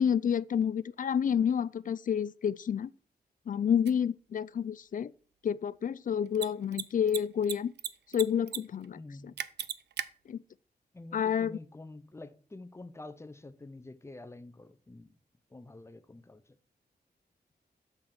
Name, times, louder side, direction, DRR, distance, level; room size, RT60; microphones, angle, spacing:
voice 1, 0.0-2.9 3.5-5.1 5.4-7.7 8.1-9.0 10.3-10.4 11.1-11.6, left 8 dB, 50° left, 0.4 m, -29 dB
Mechanisms, 3.8-3.9 6.3-6.5 6.7-6.8 7.1-7.9 8.1-8.6 8.8-8.9 9.4-10.0, right 9 dB, 85° right, 0.5 m, -35 dB
voice 2, 8.9-9.3 10.9-15.2 15.5-16.6, left 2 dB, 15° left, 0.6 m, -48 dB
6.9 x 5.7 x 5.8 m
wide cardioid pair, 100°, 17 cm